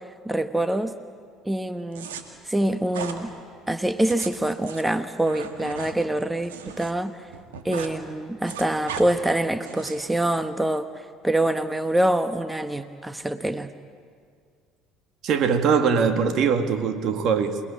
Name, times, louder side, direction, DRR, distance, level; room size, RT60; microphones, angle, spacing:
voice 1, 0.2-0.9 1.4-2.1 2.4-3.3 3.7-7.3 7.6-13.7, right 1 dB, 10° right, 10 dB, 1.0 m, -25 dB
sound 1, 1.9-2.2 2.9-3.2 3.9-6.9 7.2-7.9 8.2-9.0 9.6-10.1, right 7 dB, 80° right, 1.9 m, -37 dB
voice 2, 15.2-17.6, right 6 dB, 55° right, 7 dB, 2.0 m, -22 dB
28.0 x 19.5 x 8.6 m, 2.1 s
hypercardioid pair, 60°, 0 cm